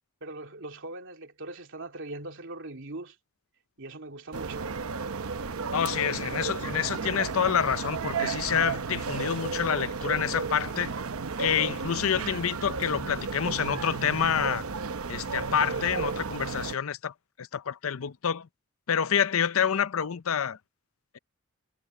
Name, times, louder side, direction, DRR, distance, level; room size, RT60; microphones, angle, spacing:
voice 1, 0.2-3.1 3.8-4.8, right 2 dB, 65° right, 3.0 m, -41 dB
sound 1, 4.3-16.8, right 4 dB, 85° right, 0.9 m, -33 dB
voice 2, 5.7-10.9 11.4-14.6 15.1-18.5 18.9-20.6, left 8 dB, 70° left, 0.6 m, -28 dB
head